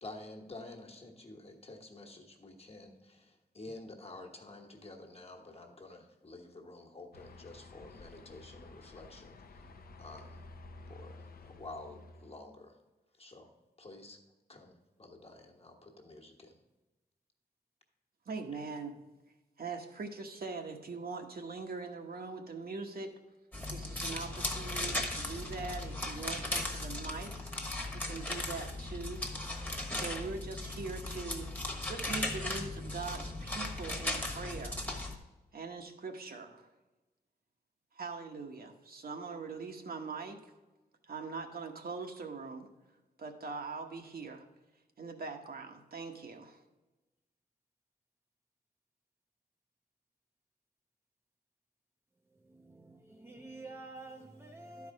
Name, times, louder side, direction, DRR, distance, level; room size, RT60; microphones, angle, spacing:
voice 1, 0.0-9.7 10.0-10.4 10.9-12.8 13.1-13.5 13.8-14.2 14.5-16.6, left 2 dB, 35° left, 1.3 m, -50 dB
sound 1, 7.1-12.4, left 3 dB, 60° left, 0.7 m, -52 dB
voice 2, 18.3-19.0 19.6-23.1 23.7-29.3 29.9-31.5 31.9-34.9 35.5-36.7 37.9-40.5 41.1-42.7 43.2-44.4 45.0-46.6, right 4 dB, 65° right, 1.1 m, -42 dB
sound 2, 23.5-35.1, left 1 dB, 10° left, 1.2 m, -37 dB
voice 3, 52.4-54.9, right 2 dB, 15° right, 0.6 m, -49 dB
12.0 x 4.8 x 4.7 m
wide cardioid pair, 130°, 17 cm